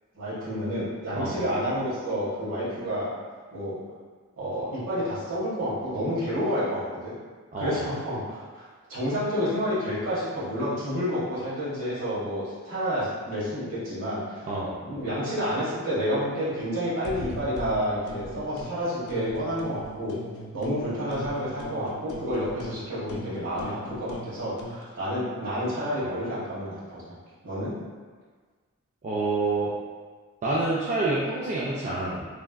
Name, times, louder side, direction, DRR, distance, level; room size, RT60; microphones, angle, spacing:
voice 1, 0.1-3.1 3.5-3.8 4.4-7.1 7.6-14.4 14.8-20.2 20.5-27.2 27.4-27.8, equal, 65° right, -10 dB, 1.3 m, -29 dB
sound 1, 17.0-18.7 19.1-20.8 21.1-24.8, left 1 dB, 85° left, 0.4 m, -40 dB
voice 2, 29.0-29.7 30.4-32.3, right 2 dB, 35° right, -8 dB, 0.3 m, -27 dB
3.3 x 2.4 x 2.2 m, 1.5 s
head